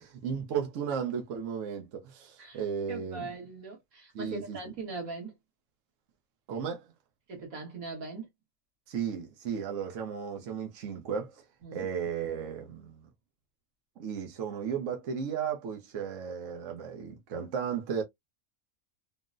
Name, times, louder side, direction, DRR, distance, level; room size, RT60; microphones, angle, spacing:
voice 1, 0.0-3.3 4.1-4.6 6.5-6.8 8.9-11.4 11.7-13.0 14.0-18.0, right 7 dB, 70° right, 1.1 m, -34 dB
voice 2, 2.9-5.3 7.3-8.3 11.6-11.9, right 3 dB, 85° right, 1.8 m, -40 dB
3.7 x 2.1 x 2.4 m
omnidirectional pair, 1.4 m